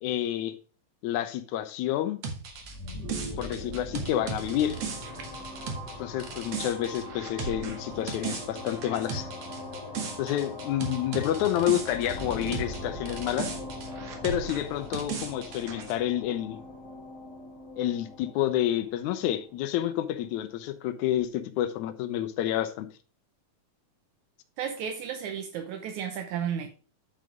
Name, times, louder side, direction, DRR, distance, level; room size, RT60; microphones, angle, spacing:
voice 1, 0.0-0.5 1.0-2.2 3.4-4.8 6.0-9.3 10.2-13.5 14.2-16.6 17.8-22.9, left 12 dB, 80° left, 2.1 m, -29 dB
sound 1, 2.2-12.8 13.1-15.9, right 5 dB, 60° right, 2.5 m, -37 dB
sound 2, 2.5-20.2, left 2 dB, 15° left, 1.9 m, -41 dB
voice 2, 24.6-26.7, right 8 dB, 75° right, 2.2 m, -33 dB
9.3 x 4.8 x 5.1 m
omnidirectional pair, 3.4 m